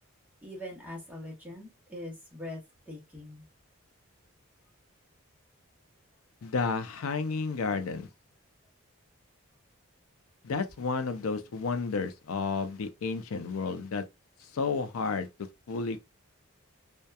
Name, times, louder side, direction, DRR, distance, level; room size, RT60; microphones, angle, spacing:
voice 1, 0.4-2.6 2.9-3.4, left 1 dB, 5° right, 0.7 m, -42 dB
voice 2, 6.4-8.1 10.4-14.0 14.5-15.3 15.7-16.0, left 4 dB, 75° left, 0.5 m, -31 dB
2.8 x 2.2 x 2.2 m
head